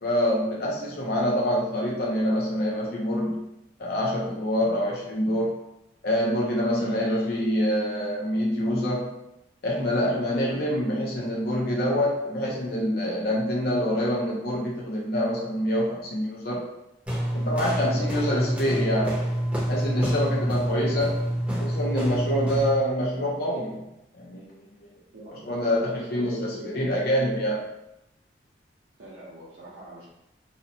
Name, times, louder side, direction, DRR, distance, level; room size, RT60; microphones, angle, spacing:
voice 1, 0.0-3.4 3.8-5.5 6.0-9.1 9.6-16.6 17.3-19.2 19.7-21.2 21.6-23.8 24.2-24.5 25.5-27.6, equal, 55° left, -4 dB, 0.5 m, -26 dB
sound 1, 17.1-22.9, equal, 5° right, 0.6 m, -27 dB
voice 2, 17.8-18.2 21.7-21.9 25.1-26.8 29.0-30.0, equal, 75° right, -9 dB, 0.7 m, -42 dB
2.7 x 2.0 x 2.7 m, 0.87 s
head